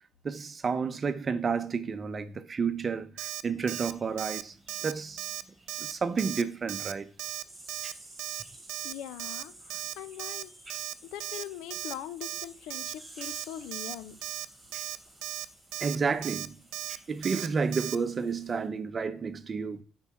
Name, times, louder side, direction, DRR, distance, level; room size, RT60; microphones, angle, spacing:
voice 1, 0.2-4.5 4.8-5.2 5.8-7.1 15.8-16.6 17.1-19.8, right 5 dB, 40° right, 0.9 m, -31 dB
Alarm, 3.2-3.4 3.7-3.9 4.2-4.4 4.7-4.9 5.2-5.4 5.7-5.9 6.2-6.4 6.7-6.9 7.2-7.4 7.7-7.9 8.2-8.4 8.7-8.9 9.2-9.4 9.7-9.9 10.2-10.4 10.7-10.9 11.2-11.4 11.7-11.9 12.2-12.4 12.7-12.9 13.2-13.4 13.7-13.9 14.2-14.5 14.7-15.0 15.2-15.5 15.7-16.0 16.2-16.5 16.7-17.0 17.2-17.5 17.7-18.0, right 15 dB, 85° right, 0.5 m, -36 dB
sound 1, 3.6-18.7, right 2 dB, 20° right, 5.0 m, -53 dB
voice 2, 8.8-10.7 11.0-14.1, left 11 dB, 90° left, 0.8 m, -42 dB
11.5 x 4.8 x 6.1 m
cardioid pair, 85°, 0 cm